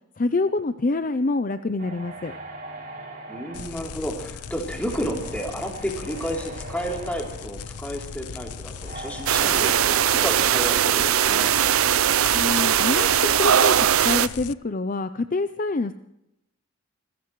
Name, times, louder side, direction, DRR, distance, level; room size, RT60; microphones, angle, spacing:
voice 1, 0.2-2.3 12.3-13.1 13.4-15.9, left 3 dB, 35° left, 10 dB, 0.5 m, -26 dB
sound 1, 1.8-10.8, right 2 dB, 40° right, 5.2 m, -41 dB
voice 2, 3.3-11.6, equal, 5° left, 0 dB, 3.3 m, -32 dB
sound 2, 3.5-14.5, left 6 dB, 85° left, 0.6 m, -38 dB
sound 3, 9.3-14.3, right 9 dB, 70° right, 0.5 m, -20 dB
26.5 x 15.5 x 3.2 m, 0.83 s
head